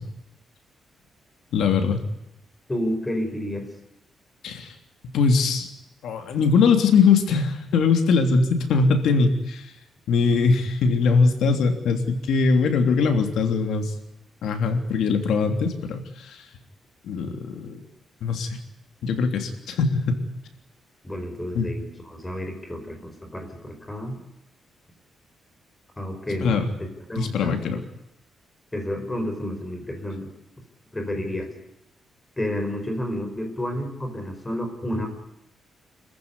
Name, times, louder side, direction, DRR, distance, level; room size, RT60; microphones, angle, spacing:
voice 1, 1.5-2.0 4.4-4.7 5.1-5.7 6.0-9.6 10.1-13.9 14.4-16.4 17.0-17.8 18.2-18.5 19.0-20.2 21.5-21.7 26.4-26.6 27.2-27.8, left 5 dB, 90° left, 6 dB, 3.3 m, -21 dB
voice 2, 2.7-3.7 21.0-24.2 26.0-27.6 28.7-30.3 30.9-31.5 32.4-35.1, left 1 dB, 10° left, 5 dB, 4.8 m, -30 dB
26.5 x 15.0 x 9.9 m, 0.88 s
wide cardioid pair, 170°, 0 cm